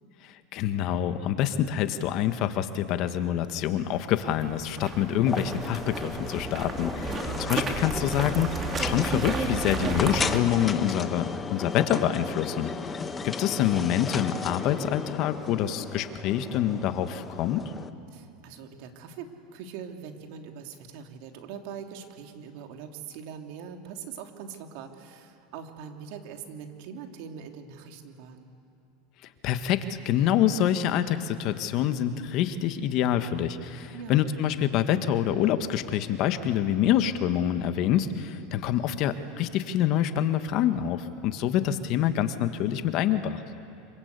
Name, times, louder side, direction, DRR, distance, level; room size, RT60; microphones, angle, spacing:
voice 1, 0.2-7.1 7.5-12.7 13.2-17.6 29.4-43.4, left 10 dB, 55° left, 9 dB, 1.6 m, -26 dB
sound 1, 4.2-10.4, right 4 dB, 30° right, 3.0 m, -33 dB
sound 2, 5.3-17.9, left 5 dB, 20° left, 1.3 m, -35 dB
voice 2, 7.1-7.5 18.1-28.5 33.9-34.3, right 7 dB, 65° right, 4 dB, 2.9 m, -42 dB
26.5 x 25.0 x 8.3 m, 2.6 s
supercardioid pair, 115°, 0 cm